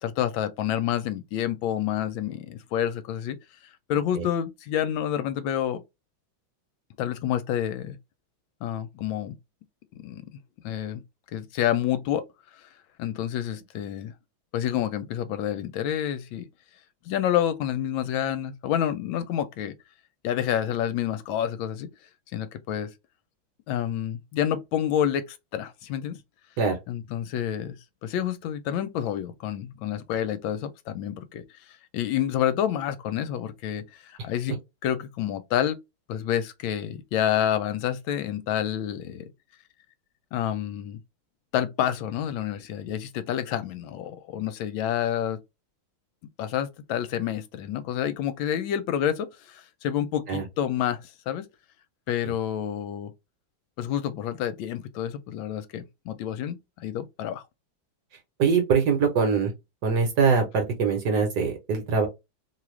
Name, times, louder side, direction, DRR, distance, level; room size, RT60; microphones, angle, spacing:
voice 1, 0.0-3.4 3.9-5.8 7.0-8.0 8.6-9.3 10.0-10.2 10.6-11.0 11.3-12.2 12.5-12.7 13.0-14.1 14.5-16.5 17.0-19.7 20.2-21.9 22.3-22.9 23.7-26.2 26.9-31.4 31.9-35.8 36.1-39.3 40.3-41.0 41.5-45.4 46.4-51.5 52.1-53.1 53.8-57.4, left 10 dB, 80° left, 1.3 m, -28 dB
voice 2, 58.4-59.5 59.8-62.1, right 5 dB, 60° right, 1.3 m, -23 dB
3.2 x 2.4 x 3.1 m
omnidirectional pair, 2.2 m